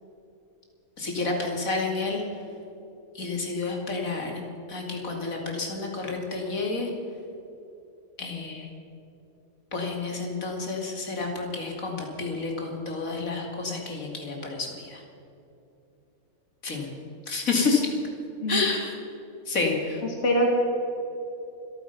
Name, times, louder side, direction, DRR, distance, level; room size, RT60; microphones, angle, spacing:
voice 1, 1.0-2.2 3.1-4.4 4.7-6.9 8.2-8.7 9.7-15.0 16.6-16.9 17.3-17.9 18.5-18.9 19.5-20.0, left 3 dB, 70° left, 1 dB, 2.9 m, -29 dB
voice 2, 18.4-18.7 20.0-20.5, equal, 55° left, 1 dB, 1.9 m, -24 dB
26.0 x 9.2 x 5.8 m, 2.8 s
omnidirectional pair, 1.5 m